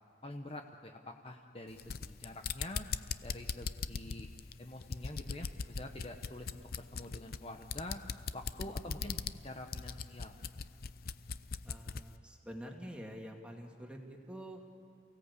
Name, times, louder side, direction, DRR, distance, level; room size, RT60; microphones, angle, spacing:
voice 1, 0.2-2.9 3.2-4.3 4.6-8.0 8.3-9.2 9.4-10.4, left 1 dB, 30° left, 4 dB, 1.0 m, -46 dB
sound 1, 1.7-12.1, left 5 dB, 50° left, 0.6 m, -40 dB
voice 2, 11.6-14.6, equal, 5° right, 1 dB, 2.3 m, -47 dB
29.0 x 17.0 x 8.4 m, 2.6 s
head